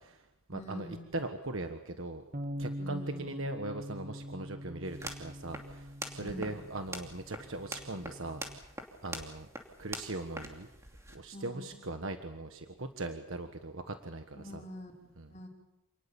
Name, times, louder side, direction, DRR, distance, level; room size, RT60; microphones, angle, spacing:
voice 1, 0.0-0.9 1.1-2.2 2.6-8.4 9.0-9.5 9.8-10.7 11.1-14.6 15.2-15.3, right 2 dB, 65° right, 7 dB, 1.5 m, -40 dB
voice 2, 0.5-1.1 2.8-3.4 6.2-6.6 11.3-11.8 14.3-15.5, equal, 30° left, -1 dB, 5.4 m, -45 dB
sound 1, 2.3-8.6, equal, 35° right, 1.4 m, -43 dB
sound 2, 4.8-11.2, right 1 dB, 15° right, 2.8 m, -45 dB
28.0 x 20.0 x 7.2 m, 0.93 s
head